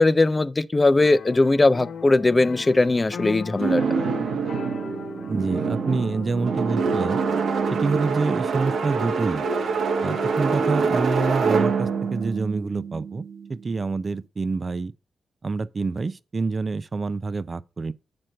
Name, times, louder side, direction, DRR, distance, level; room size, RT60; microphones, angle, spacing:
voice 1, 0.0-3.8, left 2 dB, 30° left, 0.5 m, -19 dB
sound 1, 1.0-12.2, left 6 dB, 70° left, 0.8 m, -40 dB
sound 2, 3.6-13.6, right 5 dB, 75° right, 1.1 m, -25 dB
voice 2, 5.3-7.2 7.7-9.5 10.0-13.2 13.5-14.9 15.4-17.9, right 4 dB, 45° right, 0.6 m, -27 dB
7.8 x 4.3 x 6.2 m
supercardioid pair, 40°, 0 cm